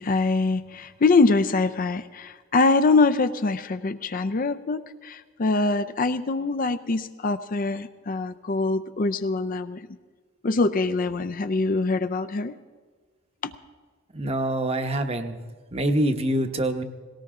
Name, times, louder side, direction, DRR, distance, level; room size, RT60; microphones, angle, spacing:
voice 1, 0.0-9.8 10.4-12.5 13.4-13.5, left 3 dB, 45° left, 11 dB, 0.5 m, -24 dB
voice 2, 14.1-15.4 15.7-16.8, right 1 dB, 30° right, 7 dB, 0.9 m, -25 dB
18.0 x 18.0 x 3.7 m, 1.5 s
head